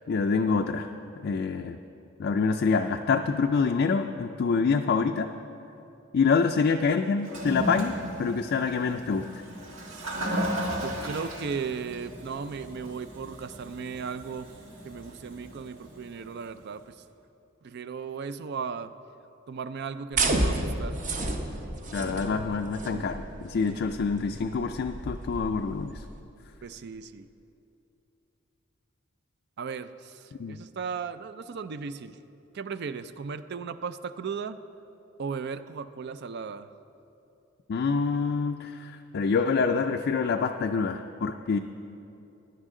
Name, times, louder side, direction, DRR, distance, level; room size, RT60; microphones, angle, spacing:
voice 1, 0.1-0.9 1.2-1.8 2.2-5.3 6.1-9.4 21.9-26.0 30.4-30.6 37.7-41.6, left 5 dB, 55° left, 4 dB, 0.4 m, -26 dB
Toilet flush, 7.2-16.5, equal, 80° right, 1.8 m, -36 dB
voice 2, 9.9-10.2 10.8-14.5 14.8-17.0 17.6-18.9 19.5-21.0 26.6-27.3 29.6-32.2 32.5-34.6 35.2-36.7, right 5 dB, 55° right, 13 dB, 0.4 m, -36 dB
sound 1, 20.1-26.2, right 2 dB, 40° right, 0.9 m, -31 dB
16.0 x 10.5 x 3.7 m, 2.9 s
head